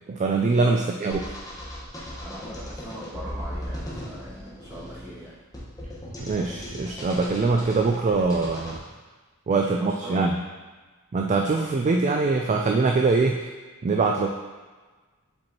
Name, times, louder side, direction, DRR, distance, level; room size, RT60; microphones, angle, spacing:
voice 1, 0.1-1.2 6.2-8.8 9.5-10.4 11.1-13.5 13.8-14.3, right 3 dB, 35° right, 2 dB, 0.3 m, -23 dB
sound 1, 1.1-8.8, equal, 15° left, 1.1 m, -37 dB
voice 2, 2.2-5.4 9.6-10.3, right 1 dB, 15° right, -9 dB, 1.9 m, -41 dB
7.6 x 4.4 x 2.9 m, 1.3 s
head